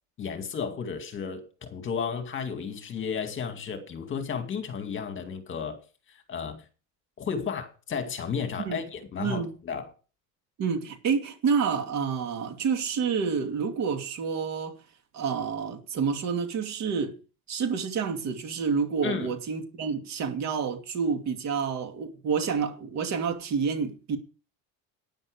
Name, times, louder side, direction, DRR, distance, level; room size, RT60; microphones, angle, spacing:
voice 1, 0.2-5.8 6.1-6.6 7.2-9.9 19.0-19.3, left 6 dB, 35° left, 2.2 m, -33 dB
voice 2, 9.2-9.5 10.6-14.8 15.1-17.2 17.5-24.2, right 6 dB, 50° right, 2.5 m, -28 dB
12.0 x 9.8 x 5.1 m
cardioid pair, 150°, 34 cm